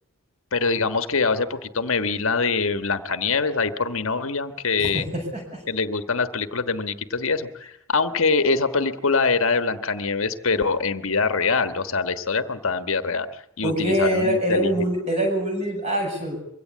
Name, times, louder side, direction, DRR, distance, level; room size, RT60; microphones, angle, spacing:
voice 1, 0.5-5.1 5.7-7.5 7.9-14.7, left 4 dB, 75° left, 10 dB, 1.4 m, -24 dB
voice 2, 4.8-5.6 13.6-16.4, right 1 dB, 30° right, 2 dB, 7.4 m, -24 dB
23.5 x 17.0 x 8.5 m, 0.75 s
head